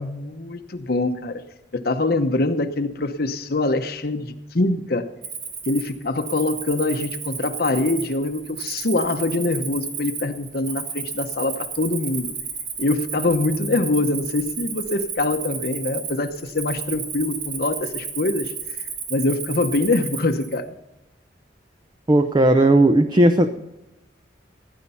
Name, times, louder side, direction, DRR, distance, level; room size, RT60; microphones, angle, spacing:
voice 1, 0.0-1.4 1.7-5.1 5.7-12.3 12.8-18.8 19.1-20.7, left 2 dB, 60° left, 6 dB, 0.9 m, -24 dB
Cricket, 5.2-20.6, right 6 dB, 70° right, 3.2 m, -33 dB
voice 2, 22.1-23.5, right 1 dB, 25° right, 8 dB, 0.7 m, -15 dB
16.5 x 10.0 x 5.6 m, 0.93 s
head